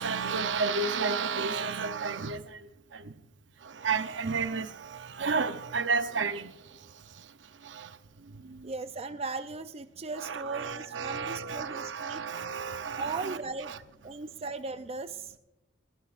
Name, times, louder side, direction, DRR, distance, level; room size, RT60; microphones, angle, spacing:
voice 1, 0.0-3.1 3.6-7.3 7.6-8.7 10.2-13.8, right 5 dB, 75° right, 0.7 m, -32 dB
voice 2, 8.6-12.2 12.9-13.7 14.0-15.4, right 3 dB, 35° right, 0.4 m, -37 dB
22.5 x 12.0 x 2.5 m
head